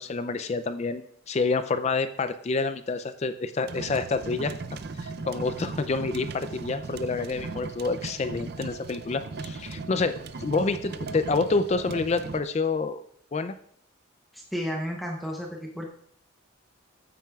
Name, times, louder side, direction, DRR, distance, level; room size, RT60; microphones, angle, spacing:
voice 1, 0.0-4.5 5.0-13.0 13.3-13.6, left 3 dB, 30° left, 11 dB, 0.3 m, -28 dB
sound 1, 3.7-12.4, right 4 dB, 50° right, 0.5 m, -38 dB
voice 2, 14.3-15.8, equal, ahead, -1 dB, 0.7 m, -32 dB
13.5 x 9.2 x 2.3 m, 0.68 s
head